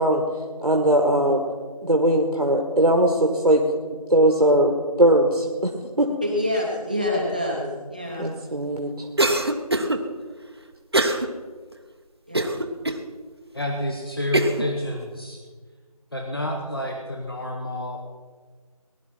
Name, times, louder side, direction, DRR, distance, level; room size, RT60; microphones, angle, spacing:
voice 1, 0.0-1.4 1.8-3.7 4.1-6.1 8.2-9.1, right 1 dB, 80° right, 2 dB, 1.8 m, -20 dB
voice 2, 6.2-8.4 12.3-12.5, left 1 dB, 15° right, -2 dB, 1.0 m, -26 dB
Cough, 9.2-10.0 10.9-11.3 11.7-11.8 12.3-13.0 13.6-13.7 14.3-14.7, right 1 dB, 40° right, 0.9 m, -22 dB
voice 3, 13.5-15.4 16.1-18.0, left 1 dB, 40° left, 1 dB, 1.3 m, -29 dB
20.0 x 11.0 x 4.5 m, 1.5 s
figure-of-eight pair, 170°, 20 cm